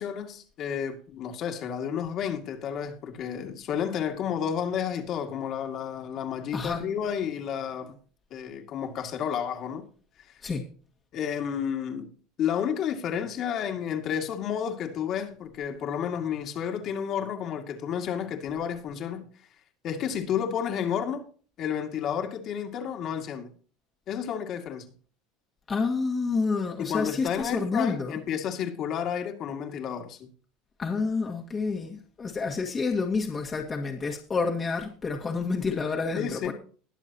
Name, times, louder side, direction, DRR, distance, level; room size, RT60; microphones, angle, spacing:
voice 1, 0.0-8.0 8.3-9.9 10.3-10.4 11.1-12.1 12.4-19.3 19.8-21.2 21.6-23.5 24.1-24.9 26.8-30.3 36.2-36.5, left 8 dB, 45° left, 2.2 m, -31 dB
voice 2, 25.7-28.2 30.8-36.5, left 4 dB, 20° left, 1.8 m, -29 dB
21.0 x 7.1 x 2.9 m
supercardioid pair, 130°, 0 cm